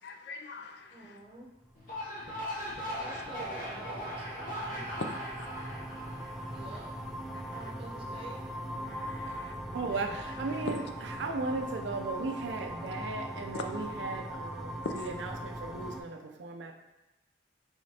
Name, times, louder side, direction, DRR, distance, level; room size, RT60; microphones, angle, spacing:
voice 1, 0.0-1.2 2.2-3.0 5.4-5.7 7.3-7.6 8.8-9.5 10.6-10.7 14.8-14.9, left 4 dB, 65° left, 5 dB, 0.4 m, -43 dB
voice 2, 0.9-1.5 3.0-5.0 6.5-6.9 7.5-8.4, right 2 dB, 30° right, -1 dB, 0.7 m, -48 dB
sound 1, 1.6-16.0, equal, ahead, 0.3 m, -41 dB
sound 2, 1.7-7.1, equal, 50° left, 0.9 m, -39 dB
voice 3, 9.7-16.7, right 3 dB, 90° right, 4 dB, 0.5 m, -36 dB
5.0 x 3.2 x 2.8 m, 1.0 s
head